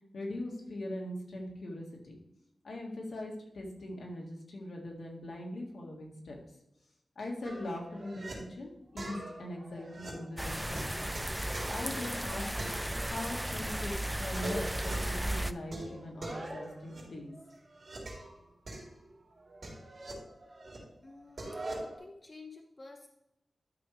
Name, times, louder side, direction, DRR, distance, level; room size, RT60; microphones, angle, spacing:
voice 1, 0.1-2.2 2.6-6.4 7.2-11.1 11.7-12.4 13.1-17.4, left 1 dB, 75° left, 0 dB, 2.0 m, -41 dB
sound 1, 7.4-8.3 9.0-12.2 12.6-13.5 13.7-13.8 14.2-15.2 15.7-18.3 18.7-20.8 21.1-22.0, right 1 dB, 50° right, 3.4 m, -43 dB
sound 2, 10.4-15.5, right 1 dB, 5° right, 0.3 m, -35 dB
voice 2, 21.0-23.1, left 3 dB, 30° left, 3 dB, 0.8 m, -51 dB
12.0 x 6.2 x 3.4 m, 0.84 s
wide cardioid pair, 120°, 0 cm